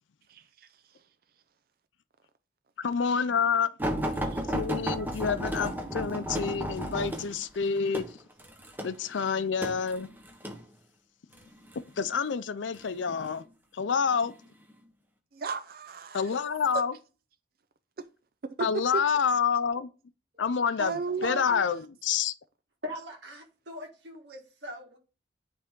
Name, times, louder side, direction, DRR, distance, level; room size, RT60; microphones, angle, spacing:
voice 1, 0.3-0.7 4.2-4.4 15.3-16.4 16.7-16.8 18.6-19.0 20.8-21.7, right 5 dB, 50° right, 0.5 m, -34 dB
voice 2, 2.8-3.7 4.5-8.1 8.8-10.1 12.0-13.4 13.7-14.3 16.1-16.9 18.6-19.9 20.4-22.3, left 6 dB, 80° left, 0.5 m, -28 dB
sound 1, 3.8-10.6 11.4-11.8 12.7-13.4 14.1-14.3 14.7-14.8, right 1 dB, 10° right, 1.1 m, -33 dB
voice 3, 22.8-25.0, left 1 dB, 70° right, 1.8 m, -41 dB
10.0 x 3.5 x 3.7 m
head